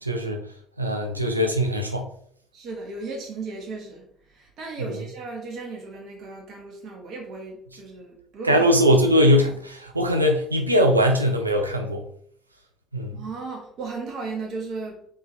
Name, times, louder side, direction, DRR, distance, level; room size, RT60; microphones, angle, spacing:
voice 1, 0.0-0.4 0.8-2.1 8.4-12.0 12.9-13.2, equal, 85° right, 3 dB, 0.5 m, -21 dB
voice 2, 2.5-9.0 13.1-15.0, right 3 dB, 50° right, 1 dB, 1.4 m, -35 dB
4.1 x 3.5 x 3.4 m, 0.63 s
figure-of-eight pair, 55°, 0 cm